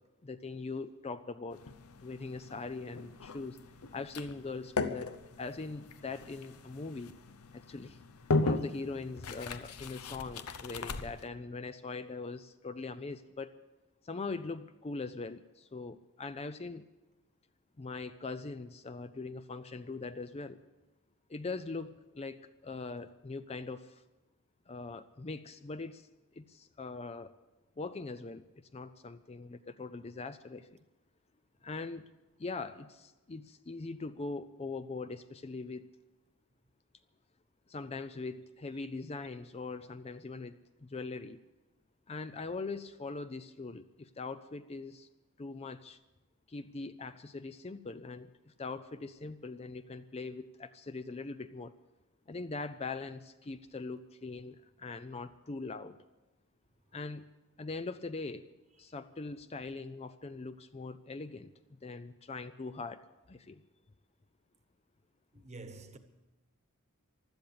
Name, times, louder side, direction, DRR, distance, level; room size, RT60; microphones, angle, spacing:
voice 1, 0.2-1.6 2.0-3.6 3.9-7.1 7.5-8.0 8.4-13.5 14.0-16.9 17.8-20.6 21.3-24.0 24.7-26.1 26.4-27.3 27.8-30.8 31.6-32.1 32.4-35.9 37.7-41.4 42.1-45.1 45.4-46.0 46.5-51.7 52.3-56.0 56.9-57.2 57.6-58.5 58.8-63.6, left 3 dB, 25° left, 0.5 m, -41 dB
sound 1, 1.5-11.3, left 3 dB, 80° left, 0.8 m, -38 dB
voice 2, 65.3-66.0, right 3 dB, 30° right, 1.2 m, -47 dB
16.0 x 12.0 x 6.9 m
head